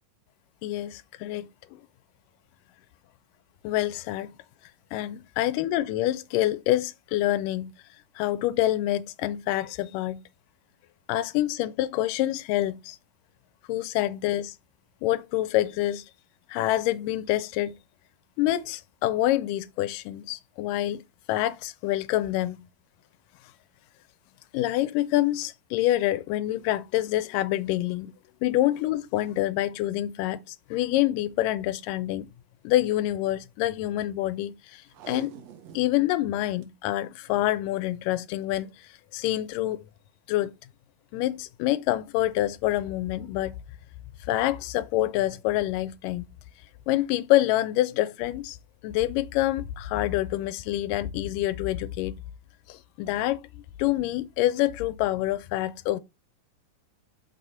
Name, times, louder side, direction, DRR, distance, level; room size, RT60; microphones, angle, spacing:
voice 1, 0.6-1.5 3.6-4.3 4.9-7.7 8.2-10.2 11.1-13.0 13.7-14.5 15.0-16.1 16.5-17.8 18.4-21.0 21.3-22.7 24.5-28.1 28.4-32.3 32.6-35.3 35.7-39.8 40.3-40.5 41.1-43.6 44.3-46.3 46.9-48.6 48.8-52.2 52.7-56.0, left 14 dB, 80° left, 2.1 m, -26 dB
Packing tape duct tape, 34.9-36.0 36.3-36.4 36.6-36.7 37.3-37.6 38.6-38.8 39.4-39.5, right 8 dB, 75° right, 1.6 m, -45 dB
6.1 x 5.4 x 4.2 m
omnidirectional pair, 3.9 m